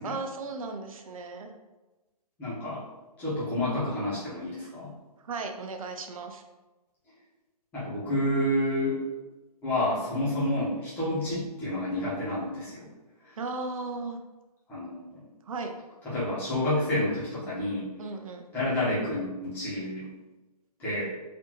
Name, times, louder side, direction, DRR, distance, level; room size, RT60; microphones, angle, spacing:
voice 1, 0.0-1.5 5.2-6.4 13.4-14.2 15.5-15.7 18.0-18.4, right 3 dB, 60° right, 5 dB, 0.6 m, -36 dB
voice 2, 2.4-2.8 3.2-4.9 7.7-9.0 9.6-12.9 14.7-15.2 16.0-17.9 18.5-20.1 20.8-21.1, left 1 dB, 10° left, -11 dB, 1.1 m, -29 dB
4.2 x 2.8 x 3.0 m, 1.1 s
hypercardioid pair, 165°, 20 cm